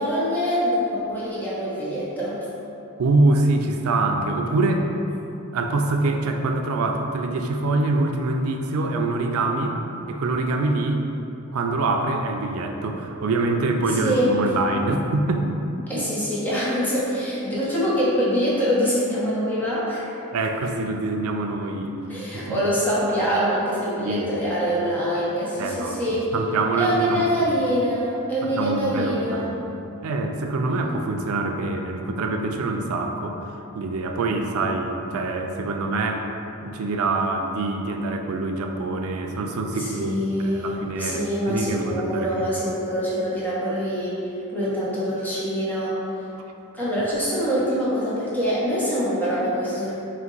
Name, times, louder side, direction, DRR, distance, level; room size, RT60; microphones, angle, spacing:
voice 1, 0.0-2.4 13.9-14.3 15.9-20.2 22.1-26.3 26.8-29.5 30.7-30.9 39.7-44.2 44.5-46.0 46.7-49.9, equal, 10° left, -9 dB, 0.9 m, -24 dB
voice 2, 3.0-4.9 5.5-9.8 10.1-11.0 11.5-15.6 15.9-16.1 20.3-22.0 22.3-22.7 24.0-24.3 25.6-27.3 28.4-29.5 30.0-33.4 33.7-36.3 36.6-40.1 40.4-42.5, right 2 dB, 85° right, 4 dB, 0.4 m, -25 dB
4.1 x 2.6 x 3.9 m, 2.9 s
head